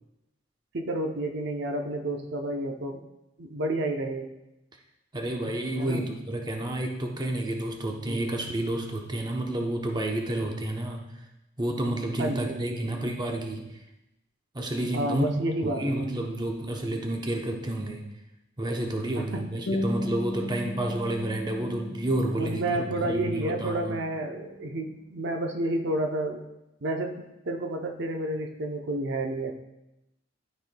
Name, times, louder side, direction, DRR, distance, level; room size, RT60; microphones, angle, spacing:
voice 1, 0.7-3.0 3.4-4.3 5.4-6.1 8.1-8.4 12.2-12.9 14.9-16.2 19.1-19.5 22.3-26.4 26.8-29.5, right 1 dB, 65° right, 3 dB, 0.7 m, -31 dB
voice 2, 5.1-11.1 11.6-13.7 14.5-15.2 15.6-18.1 18.6-24.0, right 1 dB, 20° right, 1 dB, 0.7 m, -30 dB
sound 1, 19.7-24.7, left 2 dB, 85° left, 1.2 m, -36 dB
12.5 x 4.3 x 2.2 m, 0.92 s
head